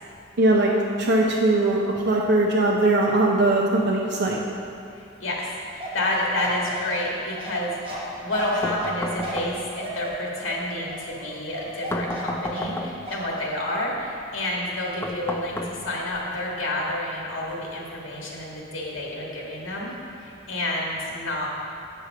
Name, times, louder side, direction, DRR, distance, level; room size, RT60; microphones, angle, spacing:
voice 1, 0.4-0.7 1.0-1.8 2.0-4.4, right 2 dB, 60° right, -3 dB, 0.6 m, -20 dB
voice 2, 4.9-19.9 20.2-21.5, left 1 dB, 75° left, -3 dB, 1.6 m, -29 dB
Bark, 5.8-12.8 13.1-13.3, equal, 30° right, 1.1 m, -35 dB
sound 1, 8.6-9.9 11.9-13.2 15.0-16.2, left 1 dB, 10° left, 0.4 m, -32 dB
8.1 x 4.4 x 6.0 m, 2.6 s
head